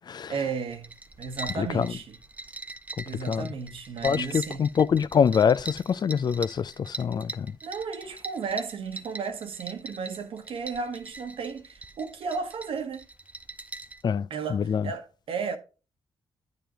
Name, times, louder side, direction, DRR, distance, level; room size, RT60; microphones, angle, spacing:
voice 1, 0.3-2.2 3.0-4.6 7.6-13.1 14.3-15.6, right 5 dB, 70° right, 1.2 m, -34 dB
sound 1, 0.7-14.0, right 2 dB, 15° right, 0.6 m, -42 dB
voice 2, 1.6-1.9 3.0-3.5 4.0-7.6 14.0-14.9, left 7 dB, 45° left, 0.3 m, -25 dB
9.1 x 6.8 x 2.9 m
cardioid pair, 65°, 10 cm